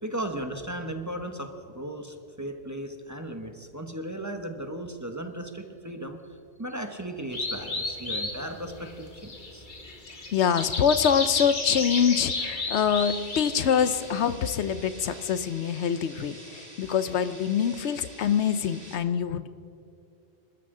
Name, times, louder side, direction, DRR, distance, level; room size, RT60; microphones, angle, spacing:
voice 1, 0.0-6.2 6.6-9.7, right 1 dB, 15° right, 4 dB, 1.0 m, -36 dB
sound 1, 7.3-14.3, left 2 dB, 45° left, 1.7 m, -33 dB
voice 2, 10.3-19.5, left 8 dB, 75° left, 12 dB, 1.0 m, -25 dB
sound 2, 13.0-19.0, right 1 dB, 50° right, 2.6 m, -48 dB
28.0 x 13.0 x 3.8 m, 2.5 s
omnidirectional pair, 1.1 m